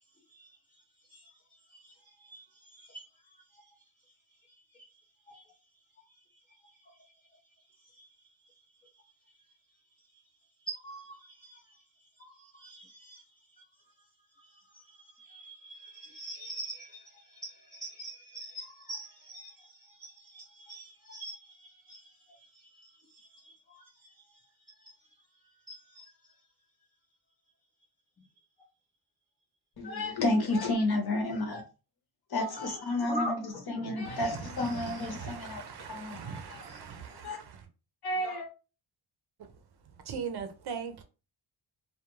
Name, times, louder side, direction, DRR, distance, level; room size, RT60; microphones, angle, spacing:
voice 1, 2.2-3.0 4.7-4.9 5.3-5.4 6.9-7.0 7.9-8.1 10.7-11.8 12.2-13.2 14.5-22.1 22.5-24.1 25.7-26.1 32.5-33.9, right 1 dB, 20° left, 0.4 m, -44 dB
voice 2, 29.8-31.6 32.3-35.6 35.9-36.8 37.2-37.4 38.0-38.5, left 2 dB, 50° left, 0.9 m, -31 dB
voice 3, 34.0-37.7 40.0-41.0, right 6 dB, 55° right, 0.6 m, -40 dB
2.3 x 2.3 x 3.0 m
wide cardioid pair, 150°, 47 cm